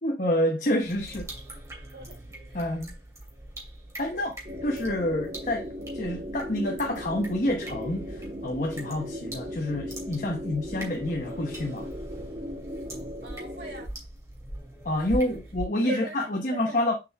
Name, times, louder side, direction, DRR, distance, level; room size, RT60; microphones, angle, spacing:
voice 1, 0.0-1.3 2.5-2.9 4.0-4.3 4.6-5.7 5.9-11.9 14.8-16.0 16.4-16.9, left 1 dB, 45° left, 1.0 m, -28 dB
sound 1, 0.8-15.6, right 1 dB, 15° right, 2.6 m, -42 dB
voice 2, 2.5-2.8 4.1-4.3 10.5-10.6 13.2-13.9 15.0-15.4 15.8-16.9, equal, 65° right, 4.2 m, -40 dB
sound 2, 4.4-13.9, equal, 40° right, 1.6 m, -37 dB
6.8 x 5.0 x 3.4 m
head